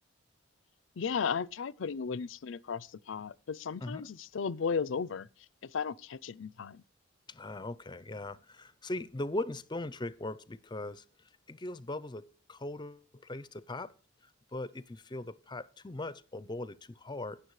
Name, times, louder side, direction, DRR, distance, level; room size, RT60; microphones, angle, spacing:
voice 1, 1.0-5.3 5.6-6.8, left 6 dB, 70° left, 0.5 m, -35 dB
voice 2, 7.3-11.0 11.5-13.9 14.5-17.4, left 2 dB, 25° left, 0.6 m, -39 dB
19.0 x 7.1 x 3.1 m
head